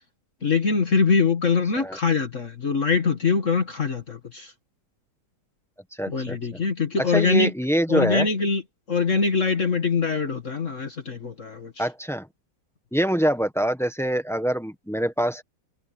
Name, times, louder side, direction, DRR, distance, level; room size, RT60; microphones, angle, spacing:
voice 1, 0.4-4.5 6.1-7.5 7.9-8.6 8.9-11.7, left 5 dB, 45° left, 1.9 m, -23 dB
voice 2, 6.0-6.6 7.0-8.3 11.8-12.3 12.9-15.4, equal, ahead, 1.0 m, -25 dB
omnidirectional pair, 1.9 m